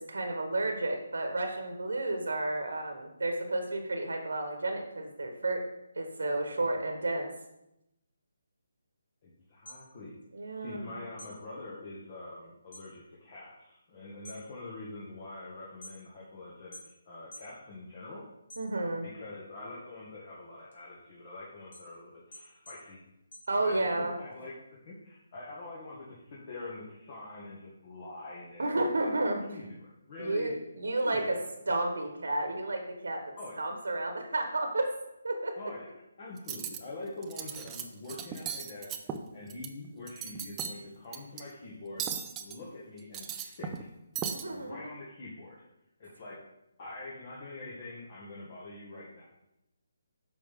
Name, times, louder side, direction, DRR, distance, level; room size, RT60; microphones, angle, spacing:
voice 1, 0.0-5.6 5.9-7.3 10.3-11.0 18.6-19.1 23.5-24.1 28.6-29.4 30.2-31.4 31.7-33.2 33.6-34.9 35.2-35.6 44.3-44.8, right 2 dB, 75° right, 4 dB, 1.2 m, -31 dB
voice 2, 9.2-10.1 10.6-18.2 19.0-23.0 23.6-24.5 24.8-30.5 31.0-31.5 33.4-33.6 35.6-35.9 36.2-42.1 42.4-43.9 44.5-45.7 46.0-46.4 46.8-49.3, left 2 dB, 40° left, -5 dB, 1.8 m, -45 dB
sound 1, 9.5-10.8 11.1-12.9 13.3-13.7 14.1-16.3 16.7-17.6 17.9-19.1 19.6-24.1, left 1 dB, 55° left, 2.5 m, -51 dB
Cutlery silverware, 36.4-36.8 37.2-37.8 38.1-39.7 40.0-40.8 41.1-41.4 42.0-42.6 43.0-43.9 44.2-44.4, right 7 dB, 15° right, 0.5 m, -37 dB
8.4 x 6.0 x 3.6 m, 0.88 s
figure-of-eight pair, 150°, 0 cm